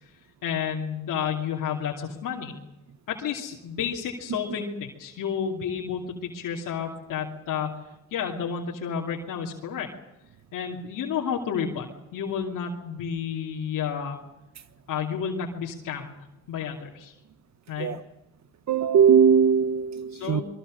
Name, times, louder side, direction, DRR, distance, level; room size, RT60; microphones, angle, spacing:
voice 1, 0.4-2.5 3.1-7.8 8.1-9.9 10.5-11.9 12.1-14.2 14.9-16.2 16.5-17.1 17.7-17.9 20.1-20.4, left 7 dB, 75° left, 2.7 m, -31 dB
voice 2, 18.7-20.4, right 7 dB, 55° right, 1.3 m, -20 dB
24.5 x 22.5 x 6.4 m
supercardioid pair, 70°, 32 cm